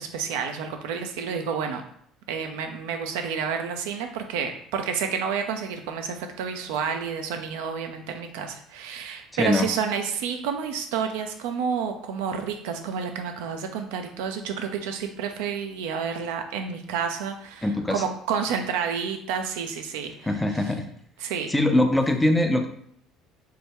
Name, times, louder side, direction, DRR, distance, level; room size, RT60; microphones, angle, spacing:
voice 1, 0.0-1.8 2.3-20.1 21.2-21.5, right 6 dB, 65° right, 5 dB, 0.3 m, -30 dB
voice 2, 9.3-9.7 17.6-18.0 20.2-20.9 21.5-22.7, left 1 dB, 10° left, 6 dB, 0.4 m, -22 dB
3.0 x 2.1 x 3.4 m, 0.65 s
figure-of-eight pair, 55°, 0 cm